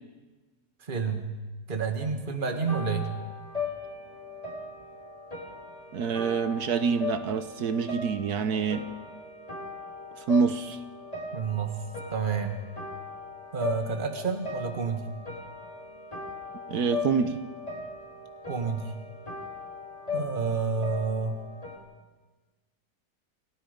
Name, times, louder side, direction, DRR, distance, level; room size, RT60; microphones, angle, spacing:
voice 1, 0.8-1.4 1.7-3.1 11.3-11.8 12.1-12.7 13.5-15.0 18.5-18.9 20.1-21.4, right 5 dB, 30° right, 5 dB, 2.0 m, -29 dB
sound 1, 2.5-21.8, left 4 dB, 25° left, 4.3 m, -39 dB
voice 2, 5.9-8.8 10.3-10.8 16.7-17.4, right 6 dB, 75° right, 10 dB, 1.5 m, -26 dB
29.5 x 17.0 x 5.3 m, 1.2 s
omnidirectional pair, 1.7 m